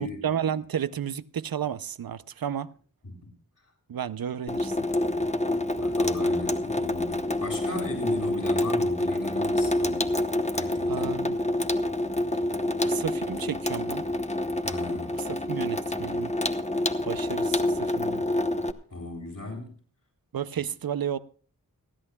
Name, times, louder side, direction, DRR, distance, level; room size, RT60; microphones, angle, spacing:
voice 1, 0.0-2.7 3.9-4.8 10.9-11.4 12.8-14.0 15.1-16.3 17.0-18.2 20.3-21.2, right 8 dB, 85° right, 0.6 m, -32 dB
Water tap faucet / Sink (filling or washing), 4.5-18.7, left 1 dB, 20° left, 0.9 m, -27 dB
voice 2, 5.7-10.1 10.5-11.2 14.6-15.2 18.9-19.7, left 2 dB, 65° left, 7.4 m, -37 dB
29.5 x 11.0 x 2.3 m
wide cardioid pair, 75°, 34 cm